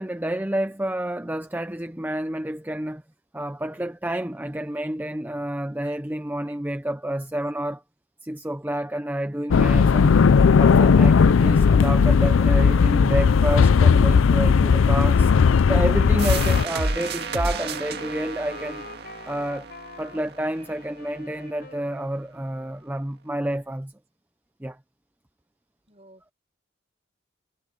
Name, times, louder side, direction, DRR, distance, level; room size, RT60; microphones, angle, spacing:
voice 1, 0.0-3.0 3.3-7.8 8.2-10.2 10.6-15.3 15.7-18.8 19.3-19.7 20.0-23.9 24.6-24.8, right 1 dB, 10° right, 0.6 m, -29 dB
sound 1, 9.5-16.7, left 5 dB, 85° left, 0.4 m, -17 dB
Wind instrument woodwind instrument, 13.3-22.3, left 3 dB, 50° left, 4.1 m, -44 dB
sound 2, 16.2-21.6, right 3 dB, 55° right, 2.1 m, -32 dB
voice 2, 25.9-26.3, right 1 dB, 30° right, 5.0 m, -52 dB
head